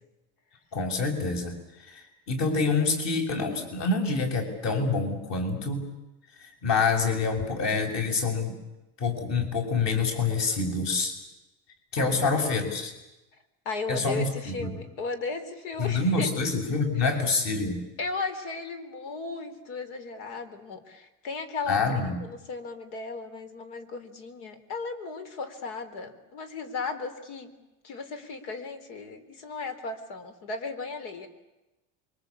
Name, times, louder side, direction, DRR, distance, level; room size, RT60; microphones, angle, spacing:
voice 1, 0.7-5.8 6.4-8.6 9.0-11.2 11.9-12.9 13.9-14.8 15.8-17.8 21.7-22.2, left 4 dB, 50° left, 4 dB, 6.9 m, -27 dB
voice 2, 12.0-12.3 13.7-16.3 17.0-17.2 18.0-27.5 27.8-31.3, left 4 dB, 85° left, 10 dB, 4.0 m, -36 dB
28.0 x 24.0 x 8.5 m, 1.0 s
cardioid pair, 145°, 35 cm